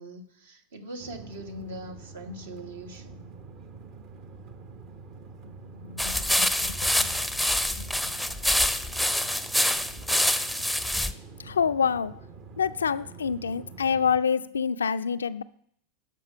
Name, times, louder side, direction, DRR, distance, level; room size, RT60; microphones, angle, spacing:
voice 1, 0.0-3.2, right 1 dB, 70° right, 1.3 m, -41 dB
sound 1, 1.0-14.2, right 4 dB, 45° right, 0.9 m, -46 dB
voice 2, 5.8-7.1 7.8-7.9 9.2-9.3 11.5-12.1 12.6-15.4, left 6 dB, 75° left, 0.3 m, -27 dB
sound 2, 6.0-11.1, left 1 dB, ahead, 0.6 m, -26 dB
12.0 x 4.8 x 5.8 m
figure-of-eight pair, 85°, 0 cm